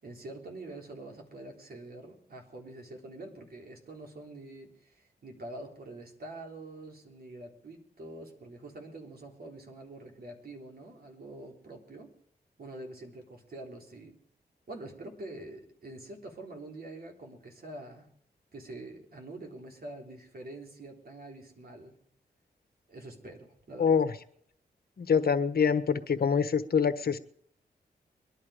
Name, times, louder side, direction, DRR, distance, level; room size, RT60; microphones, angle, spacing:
voice 1, 0.0-12.1 12.6-14.2 14.7-18.1 18.5-22.0 22.9-24.0, right 2 dB, 60° right, 1 dB, 3.5 m, -45 dB
voice 2, 25.0-27.2, left 6 dB, 60° left, 11 dB, 1.2 m, -25 dB
22.0 x 11.0 x 5.0 m, 0.63 s
cardioid pair, 55°, 17 cm